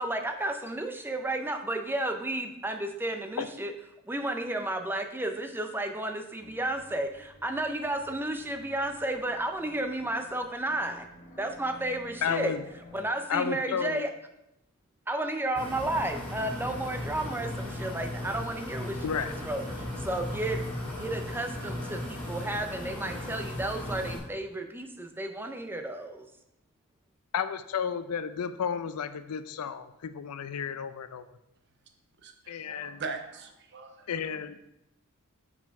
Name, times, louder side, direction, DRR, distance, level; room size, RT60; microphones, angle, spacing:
voice 1, 0.0-3.7 4.0-11.1 11.4-12.6 12.9-14.1 15.1-20.6 20.9-26.3, right 1 dB, 10° right, 6 dB, 0.5 m, -32 dB
sound 1, 6.4-13.0, equal, 35° left, 1.3 m, -52 dB
voice 2, 12.2-12.6 13.3-14.1 19.0-19.3 27.3-31.2 32.5-33.0 34.1-34.6, left 7 dB, 80° left, 12 dB, 0.5 m, -32 dB
sound 2, 15.6-24.2, left 1 dB, 10° left, 2.1 m, -36 dB
voice 3, 32.2-34.2, right 4 dB, 50° right, 6 dB, 0.8 m, -40 dB
5.6 x 4.8 x 4.6 m, 0.83 s
head